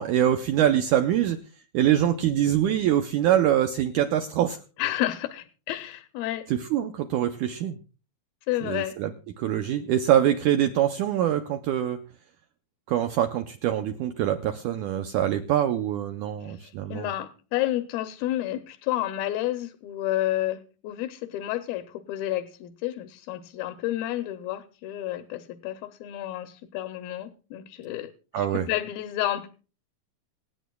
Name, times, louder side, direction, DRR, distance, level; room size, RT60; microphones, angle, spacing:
voice 1, 0.0-1.4 1.7-4.6 6.7-7.8 8.6-9.1 9.4-12.0 12.9-17.1 28.3-28.7, right 11 dB, 85° right, 8 dB, 1.7 m, -24 dB
voice 2, 4.8-6.5 8.5-8.9 16.4-29.5, left 14 dB, 80° left, 9 dB, 2.4 m, -30 dB
26.5 x 8.9 x 2.2 m, 0.35 s
omnidirectional pair, 4.3 m